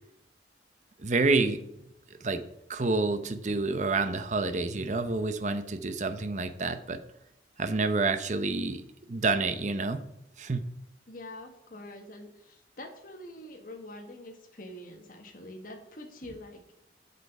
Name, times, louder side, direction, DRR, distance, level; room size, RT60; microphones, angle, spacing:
voice 1, 1.0-1.6 2.2-2.4 2.7-7.0 7.6-10.0 10.4-10.6, right 3 dB, 40° right, 10 dB, 0.7 m, -28 dB
voice 2, 11.1-16.7, left 1 dB, 50° left, 3 dB, 1.6 m, -45 dB
8.1 x 6.8 x 5.4 m, 0.83 s
head